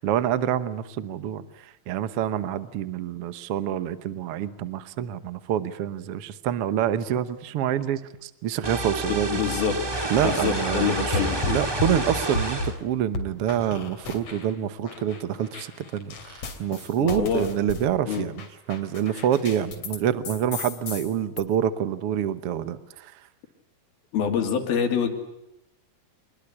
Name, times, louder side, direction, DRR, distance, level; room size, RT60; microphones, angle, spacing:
voice 1, 0.0-9.4 10.1-23.3, right 10 dB, 75° right, 13 dB, 1.3 m, -27 dB
sound 1, 8.6-12.8, right 2 dB, 15° right, 1.0 m, -29 dB
voice 2, 9.1-9.8 10.2-11.6 17.0-17.5 18.1-18.2 24.1-25.1, left 7 dB, 85° left, 5 dB, 4.7 m, -26 dB
sound 2, 11.1-12.8 13.1-14.5 14.8-20.0 20.2-21.4, left 3 dB, 45° left, 3.8 m, -33 dB
27.0 x 21.0 x 9.8 m, 0.87 s
omnidirectional pair, 4.2 m